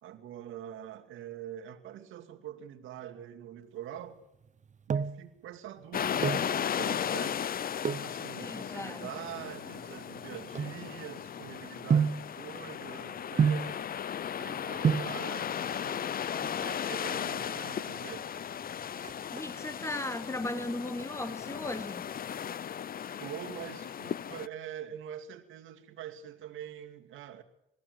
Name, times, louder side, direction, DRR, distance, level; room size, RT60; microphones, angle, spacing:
voice 1, 0.0-4.2 4.9-7.4 7.9-13.9 14.4-16.1 16.4-18.3 23.2-27.4, right 10 dB, 85° right, 2.3 m, -44 dB
sound 1, 4.5-5.3 6.0-6.6 7.8-8.2 8.9-11.3 11.9-12.3 13.4-13.8 14.5-14.6 14.8-15.2 16.3-16.9 17.2-17.3 17.5-17.6 18.0-18.4 18.7-19.7 20.2-20.6 21.0-22.1 22.4-22.5, right 6 dB, 35° right, 0.8 m, -30 dB
sound 2, 5.9-24.5, left 9 dB, 45° left, 0.7 m, -36 dB
voice 2, 8.4-9.1 17.5-17.6 19.3-22.1, left 2 dB, 15° left, 2.6 m, -37 dB
22.0 x 15.5 x 7.9 m
cardioid pair, 90°, 20 cm